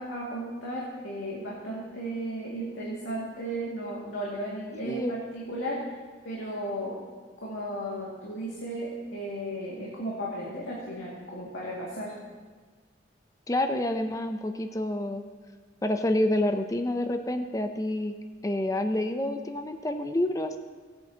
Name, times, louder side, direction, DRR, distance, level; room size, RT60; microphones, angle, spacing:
voice 1, 0.0-5.8 6.2-7.0 7.4-12.1, right 1 dB, 80° left, -5 dB, 2.1 m, -35 dB
voice 2, 13.5-15.2 15.8-18.1 18.4-20.6, left 1 dB, 15° left, 6 dB, 0.5 m, -28 dB
19.0 x 8.6 x 2.9 m, 1.5 s
head